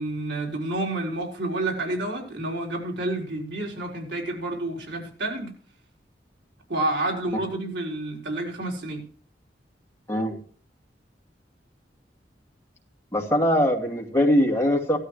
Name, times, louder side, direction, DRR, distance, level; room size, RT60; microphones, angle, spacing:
voice 1, 0.0-5.5 6.7-9.0, right 2 dB, 80° right, 0 dB, 4.3 m, -29 dB
voice 2, 13.1-15.0, equal, 15° left, 0 dB, 2.6 m, -21 dB
16.5 x 12.5 x 3.2 m, 0.43 s
head